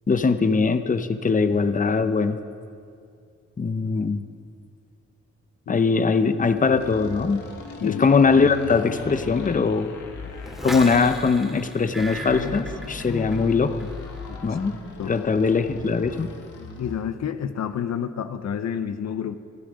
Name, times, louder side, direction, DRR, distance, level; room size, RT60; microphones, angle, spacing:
voice 1, 0.1-2.4 3.6-4.2 5.7-7.4 7.8-9.9 10.6-13.9 14.4-14.8 15.1-16.3, left 4 dB, 30° left, 11 dB, 0.7 m, -21 dB
sound 1, 6.3-17.1, left 4 dB, 85° left, 1.8 m, -37 dB
sound 2, 10.4-13.5 13.8-14.2, right 1 dB, ahead, 2.4 m, -36 dB
voice 2, 16.8-19.4, left 8 dB, 65° left, 11 dB, 0.7 m, -29 dB
25.5 x 8.8 x 5.1 m, 2.3 s
cardioid pair, 80°, 29 cm